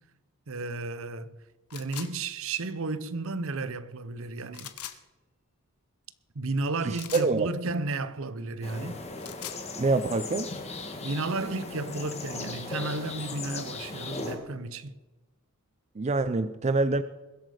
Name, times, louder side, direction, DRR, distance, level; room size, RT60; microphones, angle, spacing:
voice 1, 0.5-1.4 1.7-4.7 6.3-9.0 11.0-14.9, right 3 dB, 65° right, 0.8 m, -33 dB
sound 1, 1.7-2.1 4.5-5.0 6.9-7.3 9.0-9.6, left 11 dB, 85° left, 1.1 m, -40 dB
voice 2, 6.8-7.5 9.8-10.5 16.0-17.0, right 3 dB, 30° right, 0.4 m, -26 dB
sound 2, 8.6-14.4, left 3 dB, 30° left, 1.8 m, -38 dB
21.5 x 8.0 x 4.9 m
head